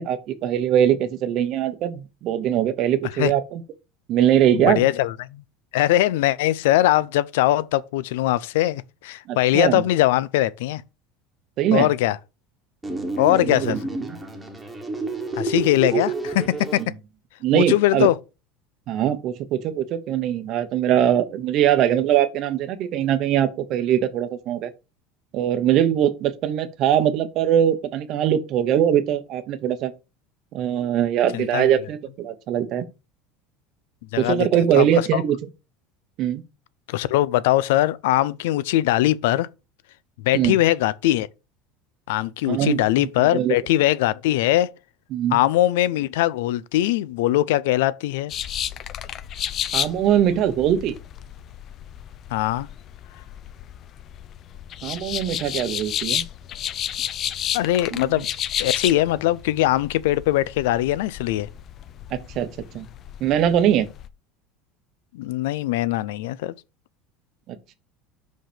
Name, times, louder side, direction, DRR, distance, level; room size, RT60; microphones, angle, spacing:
voice 1, 0.0-3.6 4.1-4.8 9.3-9.8 11.6-11.9 13.0-13.8 14.1-14.2 17.4-18.1 18.9-24.7 25.3-29.9 30.5-32.8 34.2-35.4 36.2-36.4 40.3-40.6 42.5-43.6 45.1-45.4 49.7-50.9 54.8-56.2 57.9-58.0 62.1-62.5 62.7-62.9 63.2-63.9 67.5-67.7, right 10 dB, 40° right, 0.9 m, -22 dB
voice 2, 4.5-5.4 5.7-10.8 11.7-12.2 13.2-13.8 15.4-16.4 16.7-16.8 17.5-18.2 31.3-31.7 34.1-34.5 34.7-34.9 35.1-35.2 36.9-39.5 40.2-41.3 42.1-44.7 45.3-48.3 52.3-52.7 57.5-58.3 58.6-61.5 65.1-66.5, left 15 dB, 90° left, 0.5 m, -21 dB
sound 1, 12.8-16.8, right 3 dB, 5° right, 1.3 m, -29 dB
sound 2, 48.3-64.1, left 10 dB, 30° left, 0.4 m, -32 dB
5.8 x 5.2 x 5.0 m
cardioid pair, 170°, 0 cm